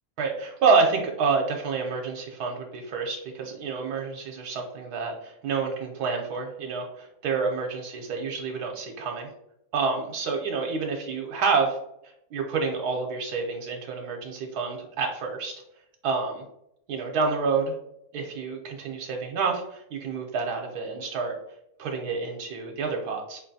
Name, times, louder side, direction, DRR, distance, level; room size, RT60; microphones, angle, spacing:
voice 1, 0.2-9.3 9.7-11.8 12.3-15.6 16.0-16.4 16.9-17.7 18.1-21.4 21.8-23.4, right 4 dB, 80° right, 1 dB, 1.1 m, -28 dB
4.9 x 2.5 x 2.6 m, 0.79 s
omnidirectional pair, 1.7 m